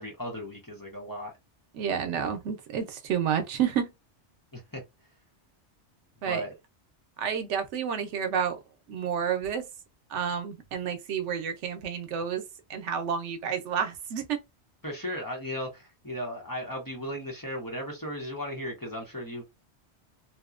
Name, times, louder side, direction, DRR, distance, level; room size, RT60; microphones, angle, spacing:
voice 1, 0.0-1.3 4.5-4.8 6.2-6.5 14.8-19.4, equal, 20° left, 0.7 m, -36 dB
voice 2, 1.7-3.9 6.2-6.4 7.2-8.6 8.9-9.6 10.1-12.4 12.7-14.4, right 7 dB, 90° right, 1.0 m, -30 dB
2.9 x 2.1 x 2.4 m
omnidirectional pair, 1.2 m